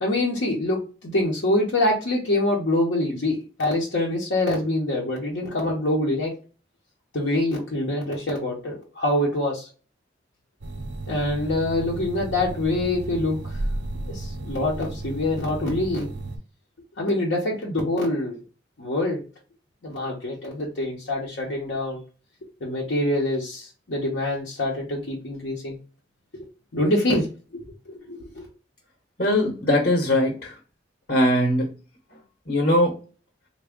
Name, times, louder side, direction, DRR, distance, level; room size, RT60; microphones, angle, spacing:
voice 1, 0.0-6.3 7.1-9.7 11.1-13.6 14.0-16.1 17.0-18.4 18.8-19.2 19.8-22.0 22.6-25.8 26.7-28.5, left 1 dB, 80° left, -3 dB, 0.8 m, -25 dB
sound 1, 10.6-16.4, right 2 dB, 75° right, 0.7 m, -33 dB
voice 2, 29.2-30.6 31.1-31.7 32.5-32.9, left 1 dB, 50° left, 0 dB, 0.9 m, -20 dB
3.4 x 2.2 x 3.5 m, 0.35 s
head